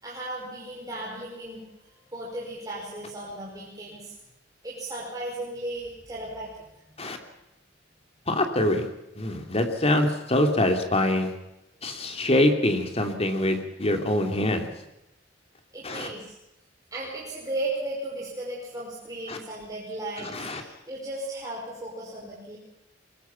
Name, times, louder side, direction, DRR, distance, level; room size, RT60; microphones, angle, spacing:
voice 1, 0.0-4.2 4.6-6.5 15.7-16.3 16.9-22.6, right 1 dB, 20° right, -4 dB, 5.3 m, -35 dB
voice 2, 8.3-8.9 9.2-11.3 11.8-14.7 15.8-16.1 19.3-19.4 20.2-20.6, left 1 dB, 35° left, 5 dB, 2.9 m, -24 dB
23.0 x 22.0 x 5.8 m, 0.90 s
head